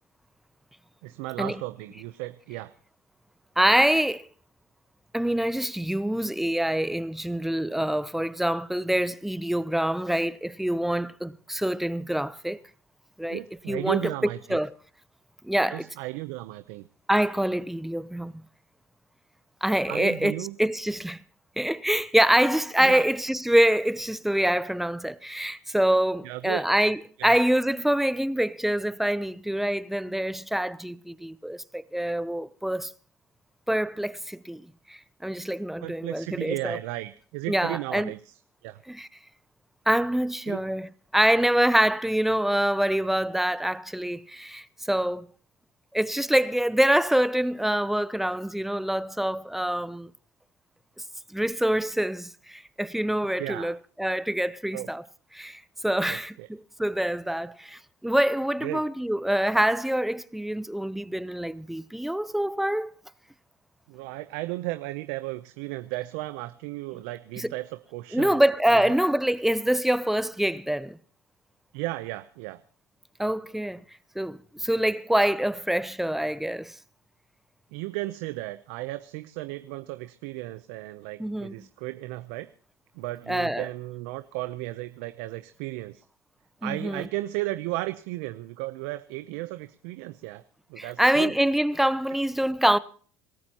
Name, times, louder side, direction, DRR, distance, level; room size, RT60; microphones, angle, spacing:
voice 1, 1.0-2.7 13.3-14.6 15.7-16.9 19.9-20.5 22.8-23.0 26.2-26.6 27.2-27.3 35.8-38.2 38.6-38.8 40.5-40.6 53.4-53.8 54.7-54.9 56.1-56.5 58.6-58.8 63.9-68.4 68.7-68.9 71.7-72.6 77.7-82.5 83.0-86.0 86.6-90.4 90.7-91.3, right 18 dB, 80° right, 0.7 m, -34 dB
voice 2, 3.6-4.3 5.1-12.6 13.2-13.4 13.7-14.1 14.5-14.7 15.4-15.9 17.1-18.4 19.6-21.2 21.6-32.9 33.7-34.6 34.9-36.8 37.5-38.1 38.9-39.1 39.9-45.3 45.9-50.1 51.3-55.0 55.3-62.9 67.4-67.5 68.1-71.0 73.2-73.8 74.1-76.7 81.2-81.5 83.3-83.7 86.6-87.1 90.8-92.8, right 1 dB, 5° right, 0.8 m, -25 dB
26.5 x 14.0 x 3.0 m
supercardioid pair, 80°, 7 cm